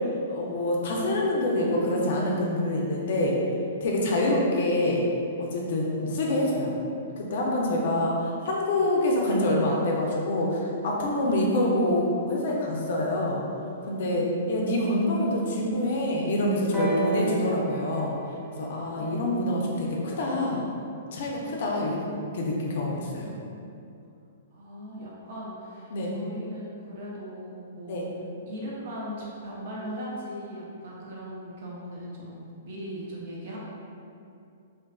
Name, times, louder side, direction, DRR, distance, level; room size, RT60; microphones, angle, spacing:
voice 1, 0.3-3.4 3.8-5.0 5.4-6.8 7.2-13.4 13.9-18.2 18.6-20.6 21.1-23.3 25.9-26.1 27.9-28.1, left 1 dB, 60° left, -2 dB, 0.4 m, -26 dB
voice 2, 14.0-14.4 24.5-28.0 28.5-33.6, equal, 60° right, -5 dB, 0.7 m, -39 dB
sound 1, 16.7-20.6 21.5-21.6, right 2 dB, 15° left, 0.7 m, -33 dB
2.5 x 2.3 x 2.2 m, 2.6 s
hypercardioid pair, 120°, 0 cm